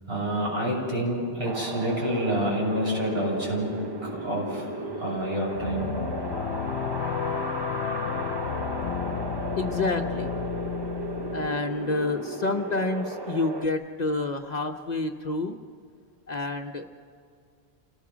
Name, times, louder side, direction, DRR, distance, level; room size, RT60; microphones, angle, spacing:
voice 1, 0.1-3.7 4.0-5.9, right 1 dB, 65° right, -4 dB, 7.2 m, -28 dB
Wind, 1.4-13.7, right 2 dB, 25° right, 0.8 m, -35 dB
sound 1, 5.5-11.5, left 7 dB, 85° left, 1.0 m, -32 dB
voice 2, 9.6-10.3 11.3-15.6 16.3-16.9, left 3 dB, 45° left, 5 dB, 0.9 m, -28 dB
28.5 x 18.5 x 6.2 m, 2.3 s
omnidirectional pair, 1.1 m